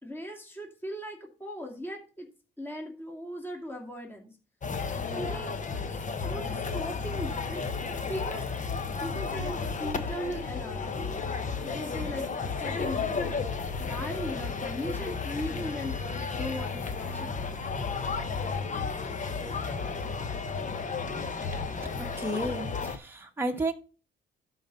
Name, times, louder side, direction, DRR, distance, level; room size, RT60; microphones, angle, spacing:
voice 1, 0.0-2.3 2.6-4.3 5.1-5.6 6.2-7.6 8.1-8.4 9.0-10.9 11.6-13.4 13.8-16.0 16.3-17.5, equal, 10° left, 2.3 m, -38 dB
sound 1, 4.6-23.0, left 5 dB, 40° left, 1.2 m, -33 dB
voice 2, 22.2-23.7, right 1 dB, 10° right, 1.3 m, -32 dB
12.0 x 4.1 x 5.5 m
cardioid pair, 90°, 20 cm